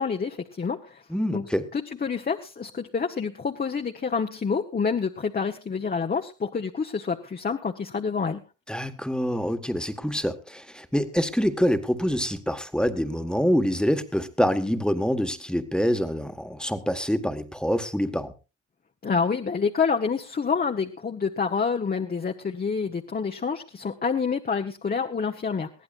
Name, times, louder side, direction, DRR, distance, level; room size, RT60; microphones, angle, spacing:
voice 1, 0.0-1.0 1.3-1.5 1.7-8.4 19.0-25.7, left 5 dB, 30° left, 4 dB, 1.2 m, -27 dB
voice 2, 1.1-1.7 8.7-18.3, equal, 5° left, 8 dB, 1.6 m, -26 dB
21.0 x 15.0 x 2.5 m, 0.30 s
cardioid pair, 90°, 30 cm